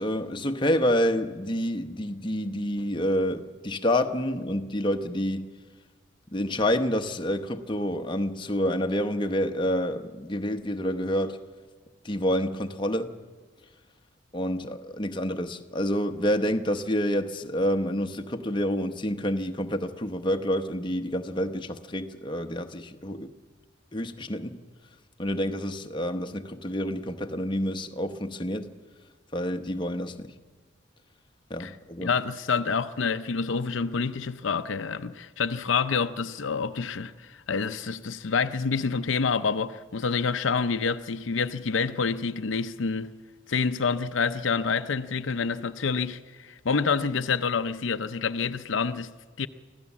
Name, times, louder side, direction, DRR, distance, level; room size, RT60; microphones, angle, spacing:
voice 1, 0.0-5.5 6.3-11.4 12.0-13.1 14.3-23.3 23.9-24.6 25.2-28.7 29.3-30.3 31.5-32.1, equal, 25° left, 0.9 m, -28 dB
voice 2, 32.0-43.1 43.5-49.5, left 5 dB, 80° left, 0.6 m, -28 dB
25.0 x 16.0 x 7.2 m
head